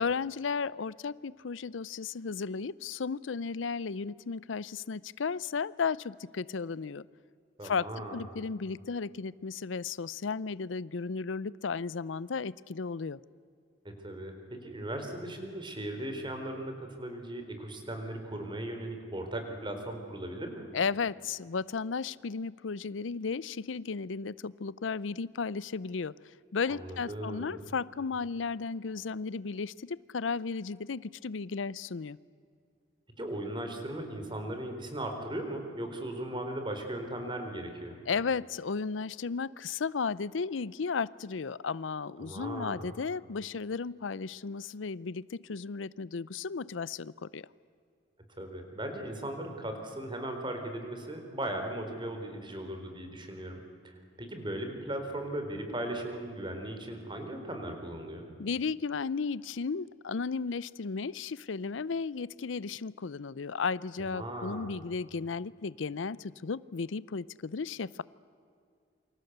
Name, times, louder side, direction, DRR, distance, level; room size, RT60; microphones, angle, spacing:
voice 1, 0.0-7.1 7.6-13.2 20.7-32.2 38.1-47.5 58.4-68.0, left 5 dB, 90° left, 20 dB, 0.6 m, -34 dB
voice 2, 7.6-8.2 13.8-20.7 26.7-27.6 33.2-38.0 42.2-42.9 48.4-53.6 53.8-58.3 64.1-64.7, right 1 dB, 25° right, 5 dB, 4.0 m, -38 dB
28.5 x 25.0 x 8.1 m, 2.3 s
head